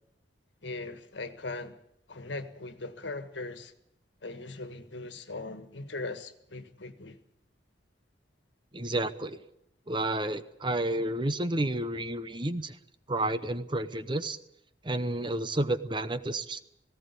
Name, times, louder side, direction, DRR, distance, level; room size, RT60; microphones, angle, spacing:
voice 1, 0.6-1.8 2.1-3.7 4.2-7.2, left 3 dB, 80° left, 1.7 m, -39 dB
voice 2, 8.7-9.4 9.9-12.8 13.1-14.4 14.8-16.6, right 1 dB, 25° right, 0.9 m, -30 dB
18.5 x 17.5 x 8.3 m
head